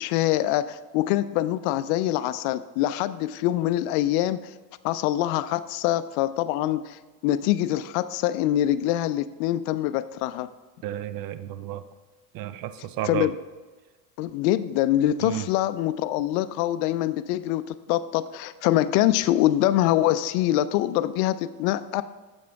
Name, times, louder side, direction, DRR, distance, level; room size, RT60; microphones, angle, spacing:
voice 1, 0.0-4.5 4.8-10.5 13.0-13.4 14.2-22.0, left 13 dB, 60° left, 14 dB, 0.5 m, -24 dB
voice 2, 10.8-11.8 12.3-13.3 15.2-15.5, right 12 dB, 45° right, 13 dB, 0.6 m, -32 dB
7.6 x 5.7 x 3.5 m, 1.3 s
hypercardioid pair, 90°, 49 cm